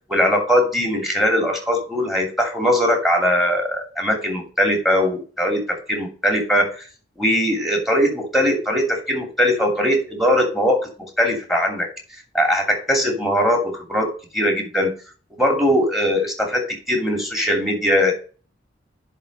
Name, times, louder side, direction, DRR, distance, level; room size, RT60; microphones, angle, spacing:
voice 1, 0.1-6.8 7.2-11.9 12.3-14.1 14.3-14.9 15.3-18.1, equal, ahead, 2 dB, 2.7 m, -20 dB
10.5 x 3.8 x 5.2 m, 0.37 s
head